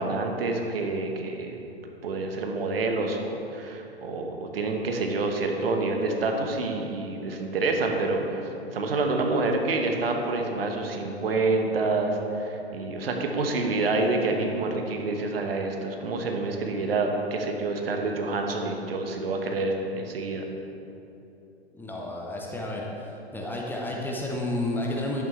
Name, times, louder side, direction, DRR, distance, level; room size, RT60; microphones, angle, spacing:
voice 1, 0.0-1.6 2.0-8.4 8.7-20.4, right 3 dB, 60° right, 3 dB, 1.2 m, -27 dB
voice 2, 21.7-23.1 23.3-25.3, left 1 dB, 5° left, -2 dB, 0.8 m, -31 dB
11.0 x 8.5 x 3.2 m, 2.8 s
figure-of-eight pair, 105°, 33 cm